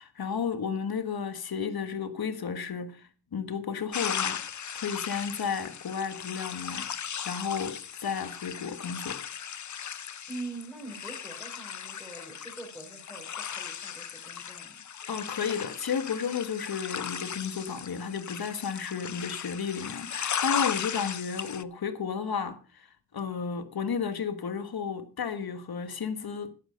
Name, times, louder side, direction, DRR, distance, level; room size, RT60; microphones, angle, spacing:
voice 1, 0.0-4.4 4.7-9.2 15.1-22.9 23.1-26.5, left 6 dB, 60° left, 1.6 m, -33 dB
sound 1, 3.9-21.6, left 8 dB, 45° left, 0.7 m, -37 dB
voice 2, 10.3-14.8, right 2 dB, ahead, 6.1 m, -43 dB
12.5 x 9.1 x 5.2 m
cardioid pair, 75°, 41 cm